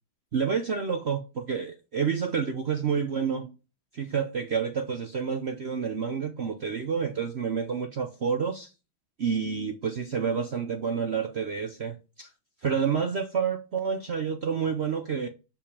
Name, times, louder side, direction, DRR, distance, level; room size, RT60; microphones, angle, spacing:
voice 1, 0.3-3.5 3.9-8.7 9.2-12.3 12.6-15.3, right 6 dB, 65° right, 0.6 m, -29 dB
7.1 x 5.4 x 6.8 m
omnidirectional pair, 2.2 m